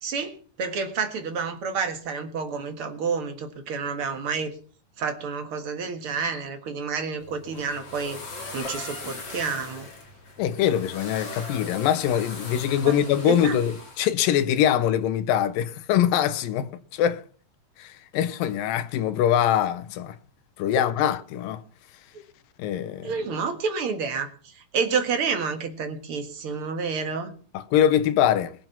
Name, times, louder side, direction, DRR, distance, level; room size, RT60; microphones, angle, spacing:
voice 1, 0.0-0.3 0.6-4.5 5.0-8.2 8.5-9.9 12.8-12.9 13.3-13.6 23.0-27.3, right 5 dB, 50° right, 2.2 m, -29 dB
sound 1, 7.2-14.0, left 3 dB, 55° left, 5.2 m, -39 dB
voice 2, 10.4-17.2 17.8-20.2 20.6-21.6 22.6-23.1 27.5-28.5, left 10 dB, 90° left, 2.6 m, -23 dB
21.5 x 7.5 x 5.8 m
omnidirectional pair, 3.9 m